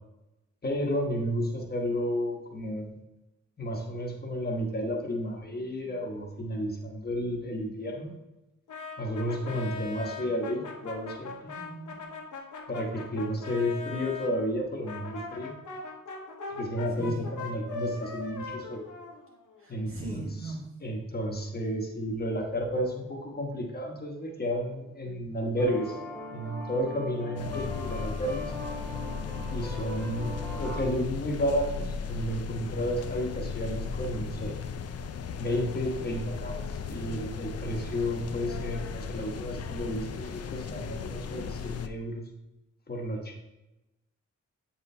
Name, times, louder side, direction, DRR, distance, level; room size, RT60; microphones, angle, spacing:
voice 1, 0.6-2.9 3.6-8.1 9.0-11.3 12.7-15.5 16.6-18.8 19.7-20.2 20.8-26.0 26.3-28.5 29.5-30.3 30.6-34.5 35.4-42.2 42.9-43.3, equal, 30° left, 0 dB, 1.2 m, -32 dB
Brass instrument, 8.7-14.3 14.8-19.6, left 3 dB, 90° left, 1.2 m, -40 dB
voice 2, 11.5-12.1 17.0-17.3 19.6-20.7, right 2 dB, 45° right, -3 dB, 1.8 m, -40 dB
sound 1, 25.6-30.8, left 1 dB, 5° left, 0.8 m, -40 dB
sound 2, 27.4-41.9, left 5 dB, 55° left, 0.4 m, -36 dB
8.1 x 4.3 x 3.3 m, 0.99 s
wide cardioid pair, 160°, 30 cm